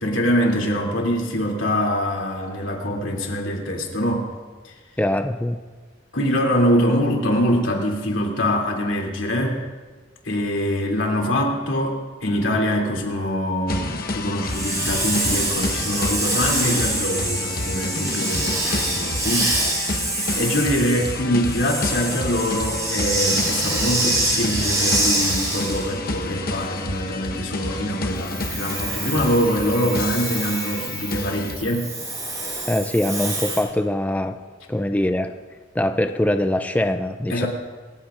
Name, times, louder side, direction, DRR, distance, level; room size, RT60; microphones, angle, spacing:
voice 1, 0.0-4.3 4.6-4.7 6.1-9.6 10.2-19.6 20.3-31.9 37.3-37.5, equal, 85° left, -1 dB, 2.9 m, -24 dB
voice 2, 5.0-5.6 32.7-34.4 34.7-35.4 35.7-37.5, left 1 dB, 10° left, 7 dB, 0.4 m, -22 dB
sound 1, 13.7-31.6, left 2 dB, 50° left, 1.1 m, -30 dB
Hiss, 14.4-25.9 28.2-33.6, right 2 dB, 20° right, 5.3 m, -26 dB
27.0 x 15.0 x 2.6 m, 1.4 s
head